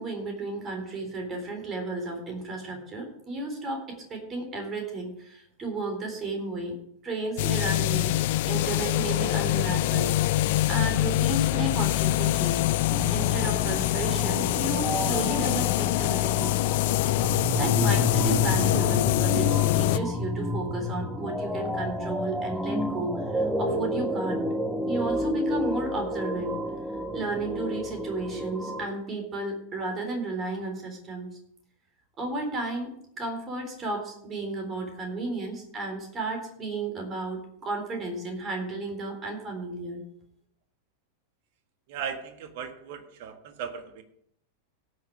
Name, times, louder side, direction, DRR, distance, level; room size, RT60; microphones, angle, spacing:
voice 1, 0.0-6.7 7.0-8.1 8.5-12.6 13.1-16.5 17.5-24.5 24.9-26.5 27.1-31.3 32.2-40.0, right 2 dB, 25° right, 3 dB, 3.8 m, -33 dB
sound 1, 7.4-20.0, left 16 dB, 50° left, 0.4 m, -24 dB
sound 2, 12.9-28.9, left 1 dB, 5° right, 1.1 m, -30 dB
voice 2, 41.9-44.0, right 7 dB, 50° right, 7 dB, 1.6 m, -37 dB
17.0 x 6.5 x 4.9 m, 0.69 s
figure-of-eight pair, 90°, 0 cm